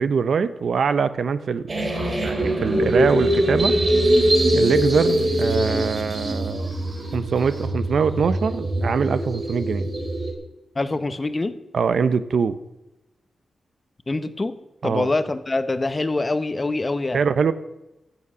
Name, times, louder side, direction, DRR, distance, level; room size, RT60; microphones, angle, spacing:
voice 1, 0.0-1.7 2.2-3.8 4.5-6.7 7.1-9.9 11.7-12.6 14.8-15.2 17.1-17.5, right 6 dB, 70° right, 13 dB, 0.7 m, -23 dB
sound 1, 1.7-10.3, right 1 dB, 40° right, 2.8 m, -22 dB
voice 2, 10.8-11.5 14.1-14.6 14.8-17.2, left 2 dB, 30° left, 12 dB, 0.8 m, -24 dB
15.5 x 6.9 x 6.1 m, 0.96 s
cardioid pair, 90°, 0 cm